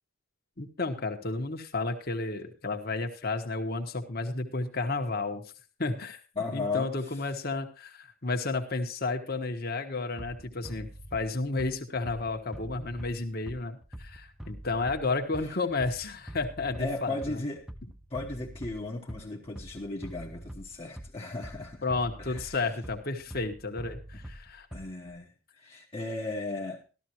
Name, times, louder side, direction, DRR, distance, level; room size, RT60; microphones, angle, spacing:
voice 1, 0.6-5.4 5.8-6.2 6.5-17.4 21.8-24.7, left 3 dB, 45° left, 1.4 m, -32 dB
voice 2, 6.4-6.9 16.8-17.6 18.1-21.8 22.2-22.6 24.7-26.8, left 3 dB, 25° left, 1.1 m, -36 dB
Bass drum, 10.2-25.2, right 1 dB, ahead, 0.5 m, -45 dB
13.5 x 13.5 x 3.0 m
head